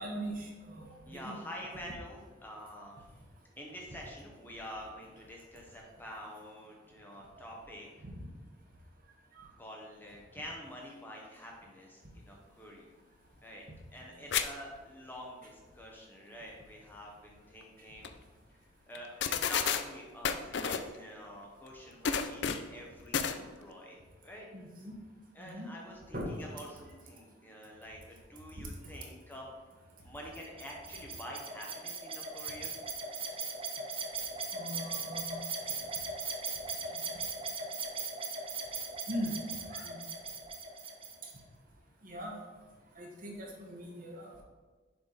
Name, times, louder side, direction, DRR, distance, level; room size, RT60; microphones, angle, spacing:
voice 1, 0.0-1.4 1.7-1.8 7.4-7.5 24.5-24.9 25.4-25.7 26.1-26.3 34.5-35.4 37.0-37.1 39.1-39.3 39.7-40.0 42.0-42.3 43.0-44.4, equal, 45° right, 0 dB, 1.3 m, -40 dB
voice 2, 1.1-3.1 3.6-7.9 9.6-12.9 13.4-13.6 13.9-18.1 18.9-24.5 25.3-29.5 30.0-32.7 35.7-35.8, equal, 10° left, -2 dB, 0.9 m, -47 dB
sound 1, 14.3-14.4 14.8-14.9 17.6-17.7 18.0-18.1 18.9-19.0 19.2-19.8 20.2-20.9 22.0-22.7 23.1-23.4, left 7 dB, 60° left, 0.4 m, -30 dB
sound 2, 30.3-41.4, right 4 dB, 30° right, 0.7 m, -39 dB
7.2 x 5.9 x 4.0 m, 1.4 s
head